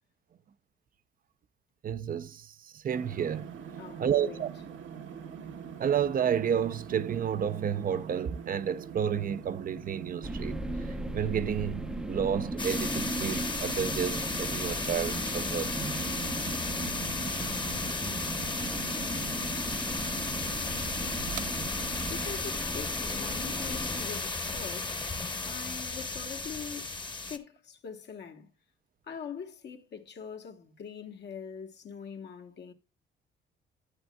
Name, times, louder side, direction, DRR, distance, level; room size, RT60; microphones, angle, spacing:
voice 1, 1.8-2.5 2.7-3.5 4.0-4.5 5.8-10.6 11.1-16.0, right 8 dB, 45° right, 0.5 m, -31 dB
sound 1, 2.9-22.3, right 7 dB, 75° right, 1.0 m, -42 dB
voice 2, 3.8-4.4 22.1-25.0 25.4-26.9 27.3-28.5 29.1-32.7, left 7 dB, 60° left, 1.3 m, -42 dB
sound 2, 10.2-24.1, right 1 dB, 5° right, 0.5 m, -38 dB
sound 3, 12.6-27.4, left 3 dB, 25° left, 1.1 m, -34 dB
11.5 x 8.1 x 2.3 m
cardioid pair, 90°, 20 cm